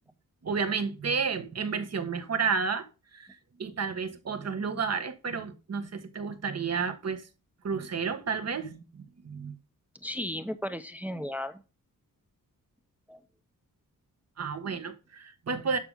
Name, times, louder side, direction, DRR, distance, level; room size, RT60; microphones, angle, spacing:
voice 1, 0.4-2.8 3.1-3.3 3.6-7.2 7.6-9.6 14.4-15.8, right 5 dB, 50° right, 1.6 m, -31 dB
voice 2, 10.0-11.6 13.1-13.2, left 1 dB, 5° right, 0.7 m, -35 dB
12.5 x 5.9 x 3.6 m
wide cardioid pair, 135°, 33 cm